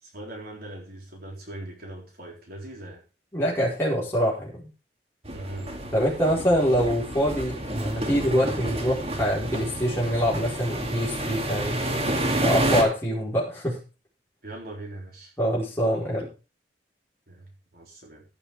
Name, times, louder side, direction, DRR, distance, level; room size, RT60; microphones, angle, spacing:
voice 1, 0.0-3.0 5.3-5.7 14.4-15.3 17.3-17.4 17.7-18.2, right 1 dB, 55° right, -1 dB, 4.0 m, -40 dB
voice 2, 3.3-4.7 5.9-11.8 12.4-13.8 15.4-16.3, equal, 15° left, -6 dB, 4.9 m, -25 dB
sound 1, 5.2-12.8, right 1 dB, 35° right, 2.3 m, -29 dB
15.0 x 6.7 x 5.1 m, 0.32 s
head